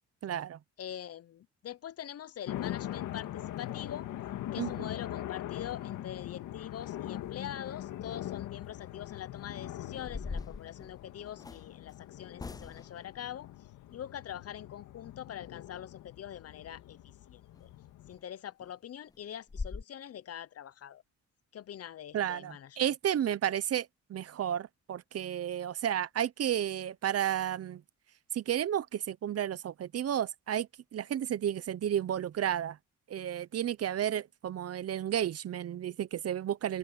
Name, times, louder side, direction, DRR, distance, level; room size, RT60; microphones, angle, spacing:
voice 1, 0.2-0.6 4.6-4.9 22.1-27.8 28.3-32.8 33.1-36.8, right 10 dB, 55° right, 0.9 m, -32 dB
voice 2, 0.8-4.1 4.5-13.5 13.9-17.0 17.3-17.7 18.1-21.0 21.5-22.8, left 10 dB, 55° left, 0.9 m, -44 dB
sound 1, 2.5-18.1, left 13 dB, 85° left, 2.0 m, -42 dB
Shuts the door, 9.3-9.4 9.9-11.7 12.4-13.0 17.6-17.7 18.1-18.2 18.6-18.7 19.1-19.2 19.5-19.8, left 4 dB, 15° left, 0.3 m, -41 dB
cardioid pair, 90°, 30 cm